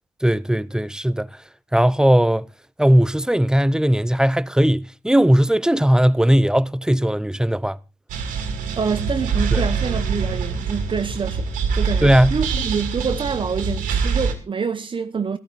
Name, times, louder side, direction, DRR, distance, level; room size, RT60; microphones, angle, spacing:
voice 1, 0.2-1.3 1.7-2.5 2.8-7.8 9.5-9.6 12.0-12.4, equal, 5° right, 0.6 m, -18 dB
sound 1, 8.1-14.3, right 5 dB, 90° right, 2.1 m, -24 dB
voice 2, 8.8-11.5 11.7-15.4, right 6 dB, 40° right, 0.9 m, -26 dB
13.5 x 13.5 x 4.1 m
supercardioid pair, 60°, 13 cm